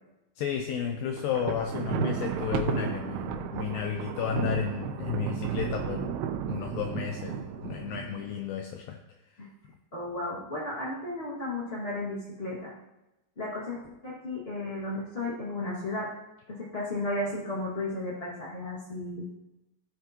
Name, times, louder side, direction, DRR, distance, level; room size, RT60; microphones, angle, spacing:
voice 1, 0.4-6.2 6.5-9.0, left 8 dB, 80° left, 4 dB, 2.1 m, -32 dB
Thunder, 1.2-8.4, right 8 dB, 85° right, 2.8 m, -33 dB
voice 2, 9.9-12.7 13.4-13.8 14.0-16.1 16.5-19.3, left 2 dB, 35° left, -8 dB, 0.9 m, -34 dB
14.5 x 8.3 x 2.9 m, 0.95 s
omnidirectional pair, 4.6 m